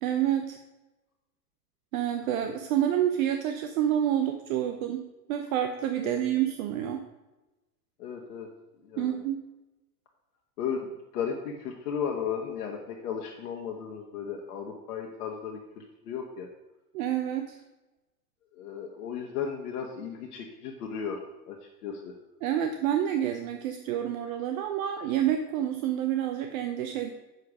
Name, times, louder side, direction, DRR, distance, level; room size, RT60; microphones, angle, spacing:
voice 1, 0.0-0.6 1.9-7.0 9.0-9.4 16.9-17.6 22.4-27.1, right 10 dB, 55° right, 5 dB, 0.9 m, -28 dB
voice 2, 8.0-8.5 8.8-9.2 10.6-10.9 11.1-16.5 18.6-21.6 21.8-22.1, left 7 dB, 65° left, 0 dB, 1.4 m, -35 dB
8.2 x 6.7 x 4.9 m, 1.1 s
hypercardioid pair, 105°, 49 cm